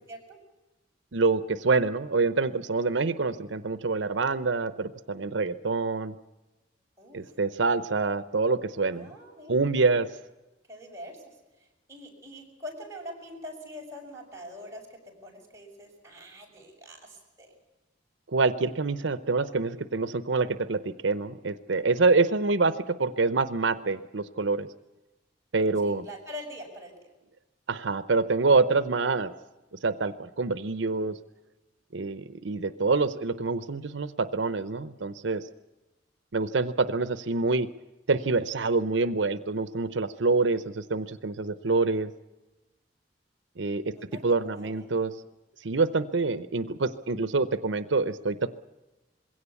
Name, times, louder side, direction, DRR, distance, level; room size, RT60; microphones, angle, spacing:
voice 1, 1.1-6.1 7.1-9.1 9.5-10.1 18.3-24.7 25.5-26.0 27.7-29.3 29.8-31.2 31.9-35.5 36.3-37.7 38.1-42.1 43.6-43.9 44.2-45.1 45.6-48.5, right 3 dB, 85° right, 12 dB, 0.8 m, -26 dB
voice 2, 7.0-7.3 8.9-9.7 10.7-11.2 11.6-17.5 25.8-26.9 43.9-44.9, left 1 dB, 15° right, -2 dB, 6.3 m, -44 dB
21.5 x 17.0 x 8.3 m, 1.1 s
head